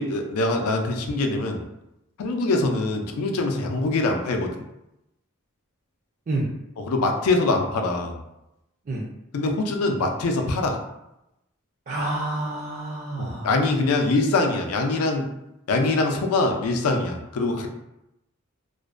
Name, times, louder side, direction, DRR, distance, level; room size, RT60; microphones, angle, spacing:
voice 1, 0.0-1.6 2.2-4.6 6.8-8.2 9.3-10.8 13.2-15.3 15.7-17.7, left 2 dB, 80° left, 3 dB, 0.4 m, -23 dB
voice 2, 11.9-13.5, right 2 dB, 35° right, -5 dB, 0.4 m, -28 dB
2.4 x 2.1 x 2.4 m, 0.88 s
head